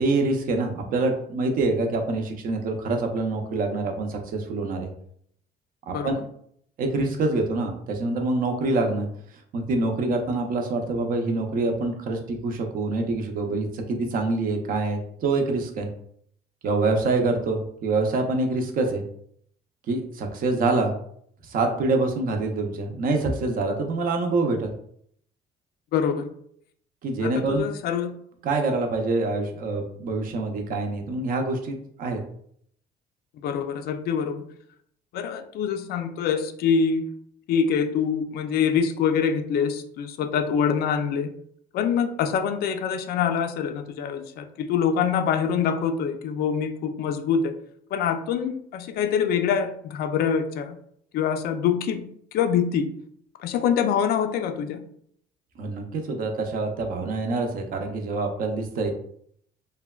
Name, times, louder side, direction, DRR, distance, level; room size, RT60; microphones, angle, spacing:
voice 1, 0.0-4.9 5.9-6.3 6.8-9.1 9.5-15.9 16.6-19.0 19.9-20.9 21.4-24.7 27.0-27.7 28.4-32.2 55.6-58.9, right 3 dB, 55° right, 4 dB, 0.6 m, -25 dB
voice 2, 25.9-26.3 27.2-28.2 33.4-34.4 35.1-37.1 37.5-41.3 41.7-47.5 47.9-50.8 51.1-52.1 52.3-52.9 53.4-54.8, left 7 dB, 65° left, 7 dB, 0.4 m, -25 dB
3.2 x 2.2 x 2.2 m, 0.67 s
cardioid pair, 110°, 17 cm